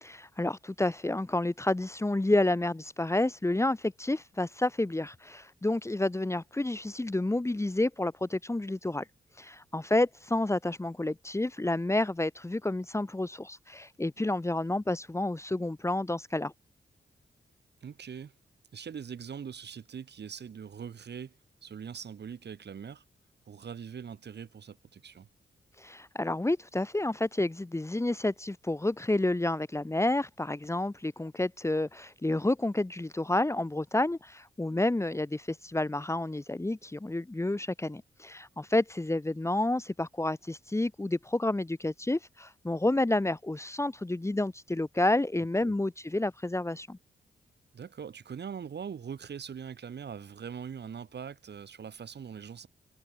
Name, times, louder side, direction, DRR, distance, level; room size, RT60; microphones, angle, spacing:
voice 1, 0.0-9.0 9.4-16.5 25.8-47.0, left 2 dB, 15° left, 1.6 m, -30 dB
voice 2, 17.8-18.3 18.7-23.0 23.5-25.3 45.6-45.7 47.7-52.7, right 7 dB, 70° right, 6.3 m, -42 dB
cardioid pair, 90°, 18 cm